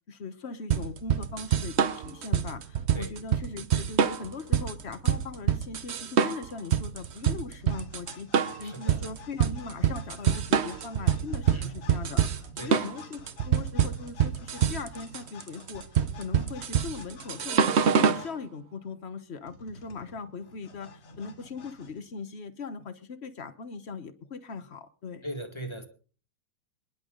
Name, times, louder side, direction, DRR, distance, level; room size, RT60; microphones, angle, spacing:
voice 1, 0.1-15.8 16.2-17.7 17.9-25.2, left 4 dB, 45° left, 0.9 m, -40 dB
sound 1, 0.7-18.3, right 8 dB, 80° right, 0.6 m, -26 dB
sound 2, 7.6-18.4 19.4-22.0, left 4 dB, 70° left, 3.0 m, -50 dB
voice 2, 8.6-9.1 11.5-11.8 12.6-12.8 25.2-25.9, right 1 dB, 15° left, 1.6 m, -39 dB
26.5 x 10.5 x 3.9 m
omnidirectional pair, 2.3 m